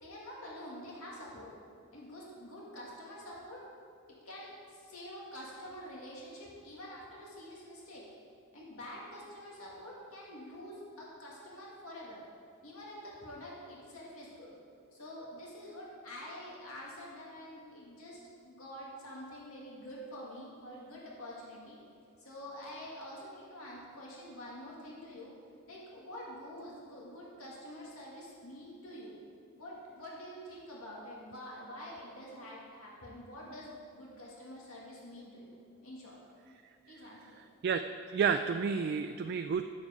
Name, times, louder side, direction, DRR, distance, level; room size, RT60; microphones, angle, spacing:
voice 1, 0.0-1.5 1.9-3.6 4.3-8.0 8.5-12.2 12.6-14.5 14.9-21.8 22.2-25.3 25.7-29.2 29.6-36.2 36.9-37.4, equal, 80° left, -5 dB, 2.0 m, -47 dB
voice 2, 37.4-39.6, right 6 dB, 50° right, 7 dB, 0.3 m, -31 dB
9.6 x 7.2 x 5.1 m, 2.5 s
head